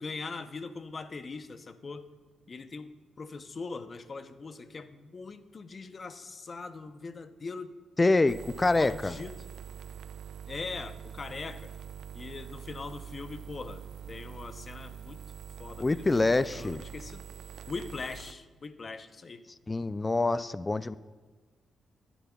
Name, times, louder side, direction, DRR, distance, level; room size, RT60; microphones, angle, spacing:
voice 1, 0.0-2.1 2.5-7.7 8.8-9.4 10.5-11.7 12.1-15.2 15.6-17.3 17.7-19.4 20.2-20.4, left 4 dB, 45° left, 10 dB, 0.7 m, -41 dB
voice 2, 8.0-9.1 15.8-16.8 19.7-21.0, left 2 dB, 25° left, 16 dB, 0.3 m, -26 dB
sound 1, 8.3-18.3, right 8 dB, 75° right, 0.3 m, -45 dB
14.5 x 10.0 x 2.3 m, 1.4 s
supercardioid pair, 60°, 0 cm